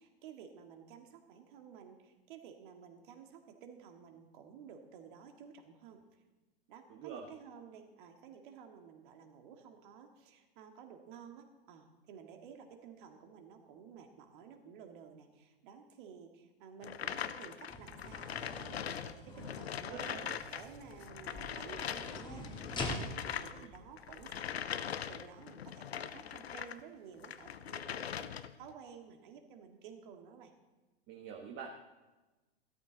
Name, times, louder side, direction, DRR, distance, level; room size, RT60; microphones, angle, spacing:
voice 1, 0.0-6.0 6.7-20.2 20.5-30.5, right 7 dB, 55° right, 4 dB, 2.0 m, -53 dB
voice 2, 6.9-7.2 19.3-19.6 19.9-20.4 23.5-23.7 31.1-31.7, right 6 dB, 35° right, 1 dB, 1.4 m, -47 dB
sound 1, 16.8-26.8 27.2-28.7, left 8 dB, 85° left, 0.7 m, -41 dB
sound 2, 17.7-25.2, left 2 dB, 15° left, 1.8 m, -46 dB
14.5 x 13.0 x 4.0 m, 1.1 s
hypercardioid pair, 110°, 31 cm